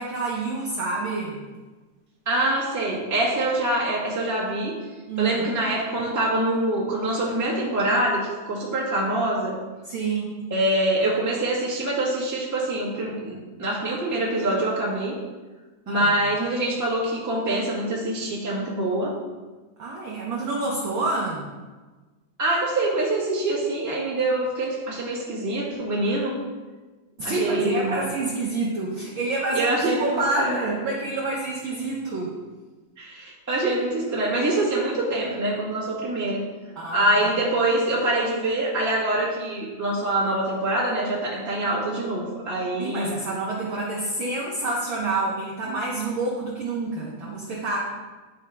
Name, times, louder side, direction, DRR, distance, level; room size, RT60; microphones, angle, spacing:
voice 1, 0.0-1.4 5.1-5.4 9.8-10.3 15.9-16.2 19.8-21.4 27.2-29.7 30.0-32.3 36.8-37.3 42.8-47.8, right 3 dB, 65° right, -3 dB, 1.2 m, -28 dB
voice 2, 2.2-4.9 5.2-9.6 10.5-15.2 15.8-19.1 22.4-26.4 27.2-28.2 29.5-30.6 33.0-36.5 36.9-43.1, right 1 dB, 10° right, -7 dB, 1.1 m, -25 dB
10.5 x 3.8 x 4.5 m, 1.3 s
omnidirectional pair, 3.4 m